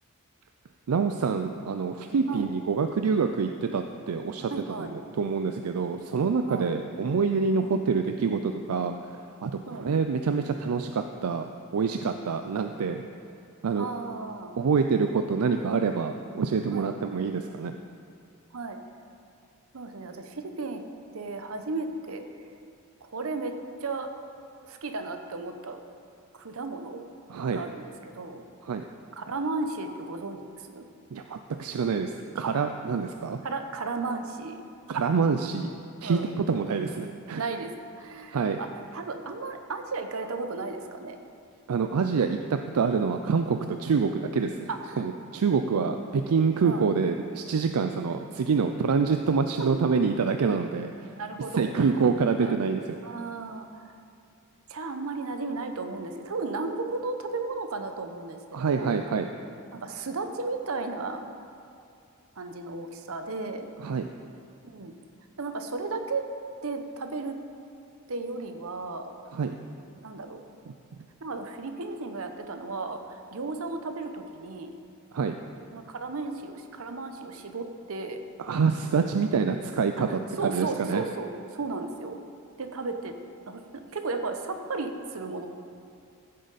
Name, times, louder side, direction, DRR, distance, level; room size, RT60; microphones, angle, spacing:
voice 1, 0.9-4.5 4.8-11.5 11.7-13.0 13.6-13.9 14.6-17.7 27.3-27.7 28.6-28.8 31.1-33.4 34.9-35.7 36.0-37.4 38.3-38.6 41.7-44.7 45.0-51.1 51.5-53.0 58.5-59.3 63.8-64.1 69.3-69.5 70.7-70.8 75.1-75.4 78.4-81.1, right 5 dB, 85° right, 6 dB, 0.4 m, -26 dB
voice 2, 4.5-4.9 6.5-6.7 7.6-7.7 9.7-9.9 13.8-14.5 16.7-16.9 18.5-18.8 19.7-20.8 21.1-22.2 23.0-23.5 23.8-24.1 24.6-25.8 26.3-27.0 27.5-28.4 29.2-30.8 33.4-34.6 36.0-36.3 37.4-41.2 44.7-45.0 46.6-46.8 49.6-49.7 51.2-51.7 52.4-52.5 53.0-53.9 54.7-59.0 59.7-61.2 62.4-63.7 64.6-64.9 65.4-66.2 66.6-67.4 68.1-69.1 70.0-70.4 71.2-74.7 75.7-78.2 80.1-82.2 82.6-83.1 83.5-83.6 83.9-85.5, right 3 dB, 70° right, 6 dB, 0.8 m, -34 dB
14.5 x 7.7 x 4.1 m, 2.5 s
head